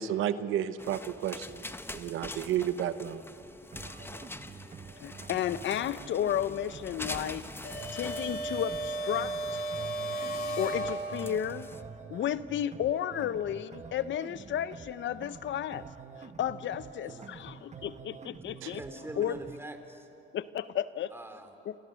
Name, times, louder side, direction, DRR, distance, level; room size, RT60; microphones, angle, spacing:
voice 1, 0.0-1.6 1.9-3.2 18.6-18.7, right 10 dB, 85° right, 12 dB, 0.9 m, -32 dB
sound 1, 0.8-11.8, left 2 dB, 10° left, 1.1 m, -45 dB
sound 2, 3.7-19.7, right 5 dB, 35° right, 1.1 m, -47 dB
voice 2, 5.0-7.4 7.9-9.3 10.6-11.7 12.1-15.9 16.2-18.8 19.2-19.3 20.3-21.1 21.7-21.8, left 10 dB, 70° left, 14 dB, 0.8 m, -33 dB
sound 3, 7.6-11.5, right 1 dB, 55° left, 5.0 m, -35 dB
voice 3, 17.0-17.4 18.7-20.1 21.1-21.5, right 1 dB, 10° right, 6 dB, 3.1 m, -44 dB
28.0 x 26.5 x 6.4 m, 2.7 s
cardioid pair, 90°, 20 cm